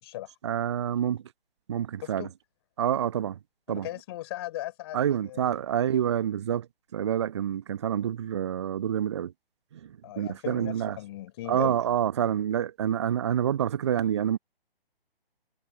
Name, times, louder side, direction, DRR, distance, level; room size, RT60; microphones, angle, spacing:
voice 1, 0.4-1.2 1.7-2.3 2.8-3.4 3.7-3.9 4.9-6.7 6.9-9.3 9.7-11.0 11.5-14.4, right 10 dB, 30° right, 1.0 m, -27 dB
voice 2, 2.0-2.3 3.7-5.4 10.0-11.8, left 15 dB, 25° left, 4.4 m, -38 dB
figure-of-eight pair, 140°, 30 cm